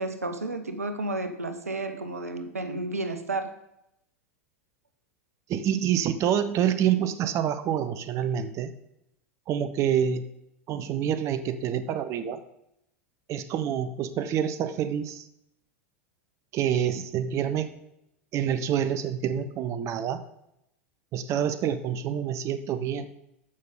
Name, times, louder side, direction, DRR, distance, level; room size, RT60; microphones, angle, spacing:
voice 1, 0.0-3.6, right 2 dB, 90° right, 9 dB, 0.9 m, -32 dB
voice 2, 5.5-8.7 9.5-10.2 10.7-12.4 13.3-15.3 16.5-17.7 18.3-20.2 21.1-23.1, right 9 dB, 40° right, 12 dB, 0.8 m, -27 dB
14.0 x 5.7 x 3.8 m, 0.81 s
hypercardioid pair, 90°, 8 cm